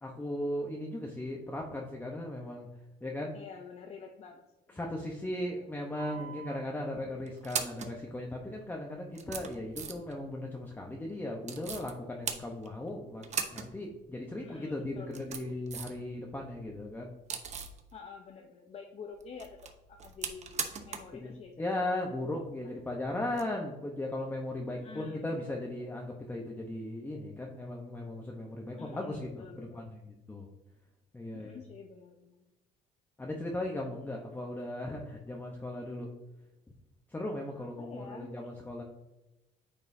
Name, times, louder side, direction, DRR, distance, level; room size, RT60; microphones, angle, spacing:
voice 1, 0.0-2.7 3.0-3.4 4.8-17.1 21.2-30.0 30.3-30.5 31.1-31.6 33.2-36.1 37.1-38.8, left 1 dB, 10° left, -1 dB, 0.9 m, -37 dB
voice 2, 3.3-5.0 6.2-6.5 14.4-15.5 17.9-19.6 19.9-22.5 24.7-25.4 28.7-29.9 31.3-32.4 37.6-38.5, left 5 dB, 40° left, 2 dB, 0.7 m, -49 dB
sound 1, 6.0-6.6 7.3-7.9 8.7-8.8 9.1-10.2 11.4-11.9 12.2-12.9 13.2-13.7 14.0-14.1 14.9-16.0 16.4-17.8 19.2-21.2 21.4-21.5 23.3-23.4, right 6 dB, 45° right, 0.9 m, -39 dB
9.4 x 5.4 x 2.7 m, 1.0 s
cardioid pair, 110°, 17 cm